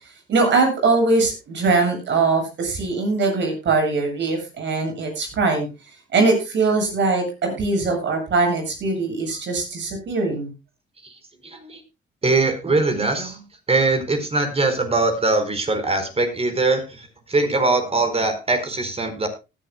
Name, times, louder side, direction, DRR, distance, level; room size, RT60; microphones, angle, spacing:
voice 1, 0.3-5.7 6.1-10.5, right 3 dB, 65° right, 4 dB, 7.8 m, -21 dB
voice 2, 11.4-11.8 12.2-13.4 13.7-19.3, right 3 dB, 30° right, 7 dB, 4.5 m, -22 dB
19.0 x 11.5 x 2.2 m, 0.27 s
cardioid pair, 90°, 20 cm